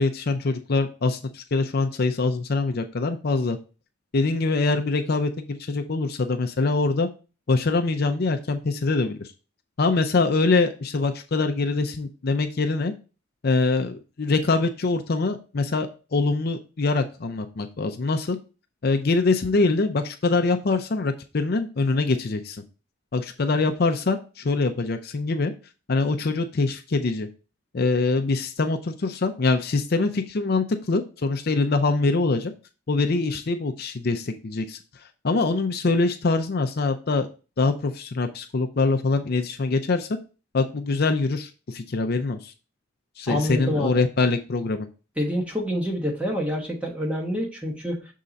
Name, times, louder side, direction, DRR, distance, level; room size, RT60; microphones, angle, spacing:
voice 1, 0.0-3.6 4.1-7.1 7.5-9.3 9.8-12.9 13.4-18.4 18.8-22.6 23.1-25.5 25.9-27.3 27.7-32.5 32.9-34.8 35.2-37.3 37.6-40.1 40.5-42.5 43.2-44.9, left 3 dB, 50° left, 6 dB, 0.5 m, -24 dB
voice 2, 43.3-44.0 45.2-48.1, equal, 5° right, -1 dB, 1.2 m, -27 dB
6.6 x 3.7 x 4.0 m, 0.33 s
head